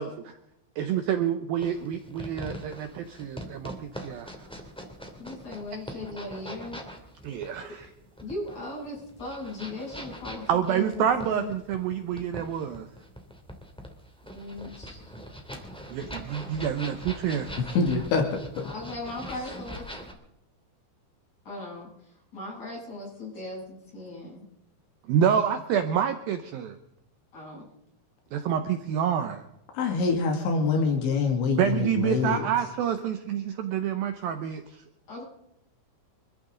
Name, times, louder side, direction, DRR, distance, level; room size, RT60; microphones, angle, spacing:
voice 1, 0.8-4.3 5.9-6.0 7.2-7.9 10.5-12.9 15.9-17.6 25.1-26.8 28.3-29.4 31.6-34.8, right 9 dB, 90° right, 8 dB, 2.0 m, -28 dB
sound 1, 1.6-20.1, equal, ahead, 1.3 m, -42 dB
voice 2, 5.2-6.8 8.2-11.5 14.3-15.1 18.6-19.8 21.5-24.5 27.3-27.7 32.0-32.1 35.1-35.2, left 2 dB, 35° left, -4 dB, 9.1 m, -38 dB
voice 3, 17.8-18.2 29.7-32.5, left 4 dB, 75° left, 3 dB, 4.5 m, -25 dB
26.0 x 14.0 x 3.8 m, 0.82 s
omnidirectional pair, 5.4 m